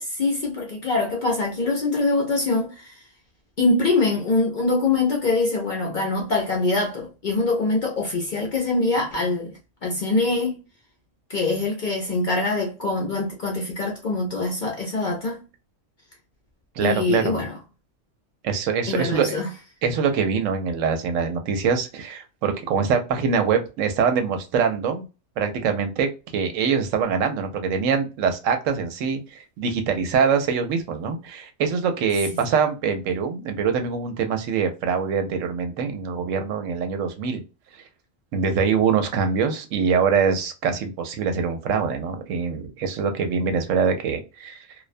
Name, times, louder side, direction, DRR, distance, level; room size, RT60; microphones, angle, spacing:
voice 1, 0.0-3.0 3.6-10.6 11.3-15.4 16.8-17.6 18.9-19.5, left 3 dB, 55° left, 0.6 m, -24 dB
voice 2, 16.8-17.4 18.4-19.4 19.8-25.0 25.4-37.4 38.3-44.5, right 6 dB, 80° right, 0.9 m, -24 dB
2.4 x 2.1 x 2.5 m
omnidirectional pair, 1.3 m